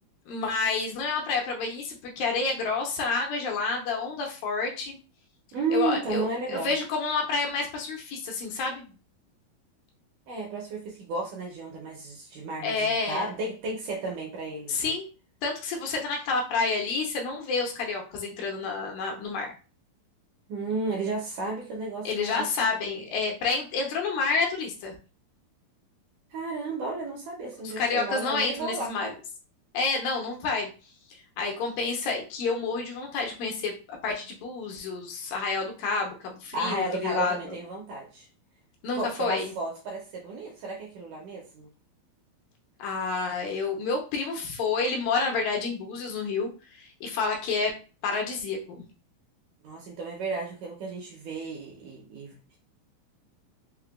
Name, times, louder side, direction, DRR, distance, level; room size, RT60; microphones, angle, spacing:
voice 1, 0.3-5.0 5.7-8.8 12.6-13.4 14.7-15.0 15.4-19.5 22.1-25.0 27.6-29.1 29.7-30.7 31.4-37.5 38.8-39.5 42.8-46.5 46.8-47.7 48.0-48.6, left 4 dB, 80° left, 1 dB, 2.3 m, -29 dB
voice 2, 5.5-6.7 10.3-14.9 20.5-22.5 26.3-29.1 36.5-38.3 38.9-41.7 49.6-52.6, right 3 dB, 75° right, -1 dB, 2.0 m, -33 dB
5.7 x 2.2 x 2.3 m, 0.35 s
omnidirectional pair, 4.3 m